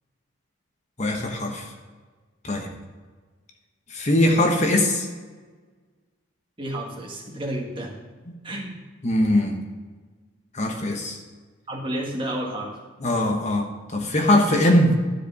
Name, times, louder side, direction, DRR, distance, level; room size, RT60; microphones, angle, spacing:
voice 1, 1.0-1.6 2.4-2.7 3.9-5.1 9.0-9.6 10.5-11.2 13.0-14.9, left 1 dB, 35° left, 2 dB, 1.1 m, -21 dB
voice 2, 6.6-8.0 8.4-8.8 11.7-12.8, right 1 dB, 25° right, 0 dB, 1.7 m, -31 dB
12.5 x 5.0 x 6.8 m, 1.4 s
head